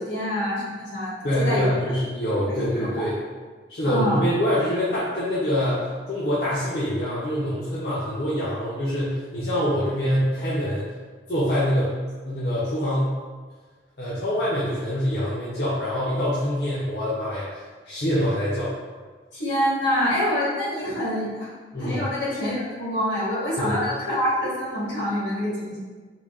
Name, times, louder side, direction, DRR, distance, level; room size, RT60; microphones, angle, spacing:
voice 1, 0.0-1.7 2.4-3.0 3.8-4.2 19.3-21.5 21.8-25.8, equal, 80° left, -7 dB, 1.5 m, -26 dB
voice 2, 1.2-3.2 3.7-10.9 11.3-11.9 12.2-13.1 14.0-18.7 21.7-22.0 23.6-23.9, equal, 60° left, -9 dB, 0.7 m, -25 dB
3.9 x 2.2 x 3.5 m, 1.4 s
head